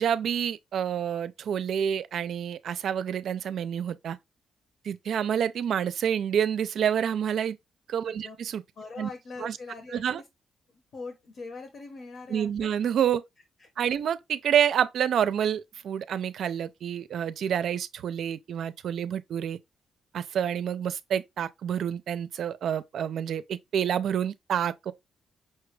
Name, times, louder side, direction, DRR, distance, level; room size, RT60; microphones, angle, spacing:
voice 1, 0.0-4.2 4.8-7.6 7.9-8.6 9.0-9.1 9.4-9.5 9.9-10.2 12.3-13.2 13.8-19.6 20.1-24.9, right 9 dB, 70° right, 0.4 m, -28 dB
voice 2, 8.1-8.4 8.7-10.2 10.7-12.7 13.6-13.7, left 3 dB, 60° left, 1.0 m, -42 dB
5.5 x 2.3 x 3.2 m
cardioid pair, 120°, 0 cm